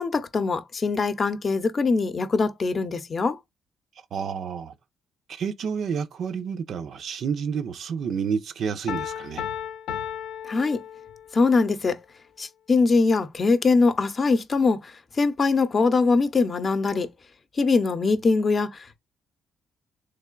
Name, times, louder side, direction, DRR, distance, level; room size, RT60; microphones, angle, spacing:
voice 1, 0.0-3.4 10.4-10.8 11.3-12.0 12.4-17.1 17.6-19.0, left 4 dB, 40° left, 0.6 m, -22 dB
voice 2, 4.1-4.7 5.3-9.4, right 6 dB, 65° right, 0.5 m, -29 dB
Piano, 8.9-11.5, left 9 dB, 90° left, 0.5 m, -34 dB
3.7 x 3.3 x 2.3 m
cardioid pair, 90°, 0 cm